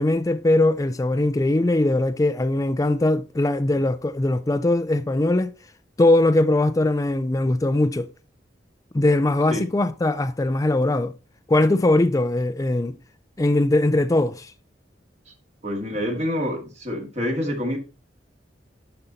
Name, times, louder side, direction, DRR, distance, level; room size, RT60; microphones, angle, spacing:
voice 1, 0.0-5.5 6.0-8.1 8.9-11.2 11.5-13.0 13.4-14.5, left 2 dB, 20° left, 0.4 m, -20 dB
voice 2, 15.6-17.8, equal, 40° right, 2.0 m, -27 dB
11.0 x 5.5 x 4.1 m
head